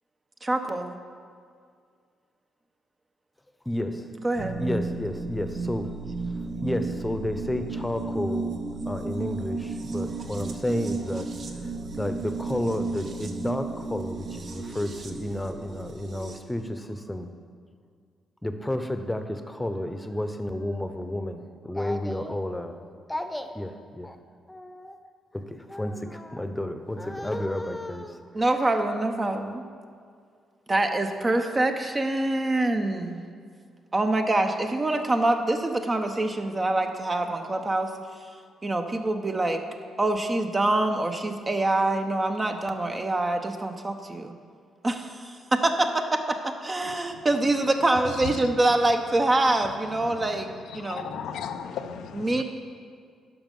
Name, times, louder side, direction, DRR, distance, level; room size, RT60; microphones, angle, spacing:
voice 1, 0.4-1.0 4.2-4.6 28.3-29.6 30.7-33.2 33.9-37.9 38.6-39.6 40.0-44.3 44.8-51.1 52.1-52.4, right 2 dB, 30° right, 5 dB, 1.0 m, -25 dB
voice 2, 3.6-4.1 4.6-5.9 6.4-8.6 8.9-17.3 18.4-22.8 23.1-24.2 24.5-25.0 25.3-28.2, left 1 dB, 10° left, 8 dB, 1.0 m, -31 dB
sound 1, 4.4-16.4, right 3 dB, 50° right, 0.9 m, -33 dB
voice 3, 50.8-52.4, left 7 dB, 70° left, 8 dB, 0.5 m, -35 dB
12.0 x 5.3 x 5.5 m, 2.1 s
hypercardioid pair, 40°, 0 cm